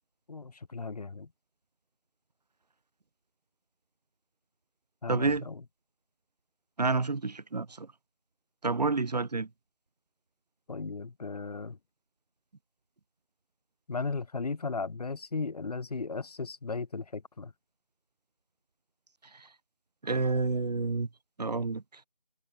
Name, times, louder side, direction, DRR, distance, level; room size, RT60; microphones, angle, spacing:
voice 1, 0.3-1.3 5.0-5.6 10.7-11.8 13.9-17.5, left 4 dB, 70° left, 0.6 m, -36 dB
voice 2, 5.1-5.5 6.8-7.9 8.6-9.5 20.0-21.1 21.4-21.8, right 3 dB, 90° right, 0.7 m, -29 dB
figure-of-eight pair, 170°, 20 cm